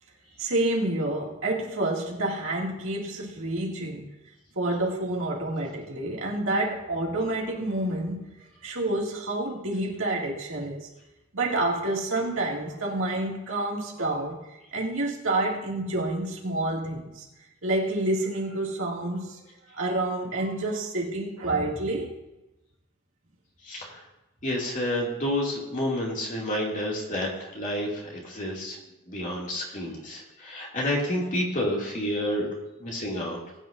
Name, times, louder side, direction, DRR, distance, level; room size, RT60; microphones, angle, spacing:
voice 1, 0.4-4.1 4.6-8.3 8.6-10.9 11.3-17.3 17.6-19.4 19.7-22.1, right 2 dB, 65° right, -2 dB, 2.3 m, -28 dB
voice 2, 23.6-24.0 24.4-28.8 29.1-32.5 32.8-33.4, left 1 dB, 40° left, -3 dB, 2.5 m, -29 dB
20.5 x 9.4 x 2.6 m, 0.98 s
head